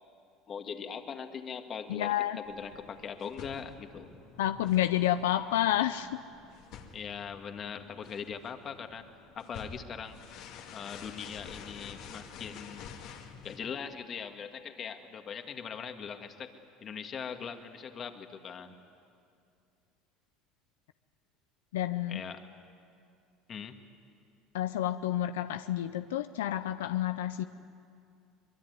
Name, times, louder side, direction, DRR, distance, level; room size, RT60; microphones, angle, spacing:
voice 1, 0.5-4.1 6.9-9.0 9.4-10.3 10.7-12.9 13.4-16.5 16.8-18.8 22.1-22.5 23.5-23.8, left 7 dB, 40° left, 6 dB, 2.0 m, -41 dB
voice 2, 1.9-2.4 4.4-6.2 21.7-22.2 24.5-27.4, left 12 dB, 90° left, 10 dB, 0.5 m, -29 dB
sound 1, 2.4-13.6, left 6 dB, 65° left, 2.4 m, -49 dB
24.0 x 22.5 x 9.5 m, 2.4 s
supercardioid pair, 90°, 0 cm